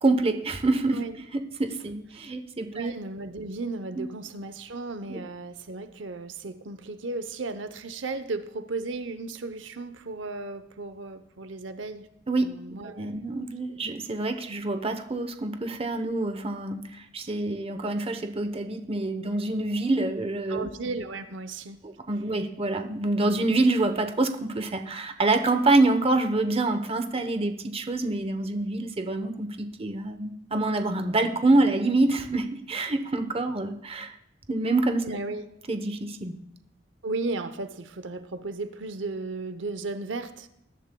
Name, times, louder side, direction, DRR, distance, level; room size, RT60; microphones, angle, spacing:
voice 1, 0.0-1.0 1.3-2.9 4.0-4.1 5.1-5.2 12.3-12.5 12.8-20.7 21.8-34.1 34.5-35.0 35.7-36.3, right 2 dB, 30° right, 7 dB, 0.9 m, -26 dB
voice 2, 2.7-12.1 12.4-13.3 13.7-13.9 20.5-21.8 35.0-35.4 37.0-40.5, right 3 dB, 85° right, 11 dB, 0.8 m, -35 dB
20.0 x 11.5 x 2.3 m, 0.78 s
head